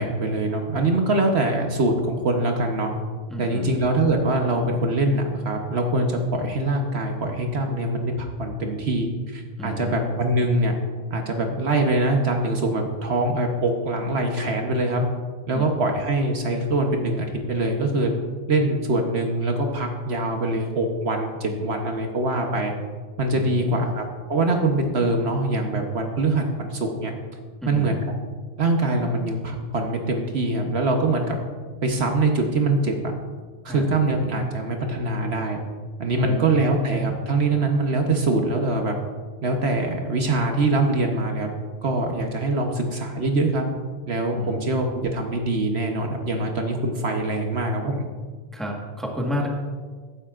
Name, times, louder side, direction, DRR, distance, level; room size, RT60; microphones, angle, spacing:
voice 1, 0.0-2.9 3.4-10.8 11.1-15.1 15.5-18.1 18.5-22.7 23.2-24.0 24.3-27.1 27.7-28.0 28.6-31.4 31.8-33.1 33.6-35.6 36.0-38.9 39.4-41.5 41.8-43.6 44.1-48.0, right 2 dB, 60° right, 3 dB, 1.2 m, -23 dB
voice 2, 3.3-3.7 9.6-10.1 15.5-15.7 23.3-23.8 27.6-27.9 33.7-33.9 36.2-36.8 44.4-44.8 48.5-49.5, equal, ahead, -1 dB, 1.3 m, -31 dB
14.5 x 10.0 x 2.5 m, 1.5 s
omnidirectional pair, 1.2 m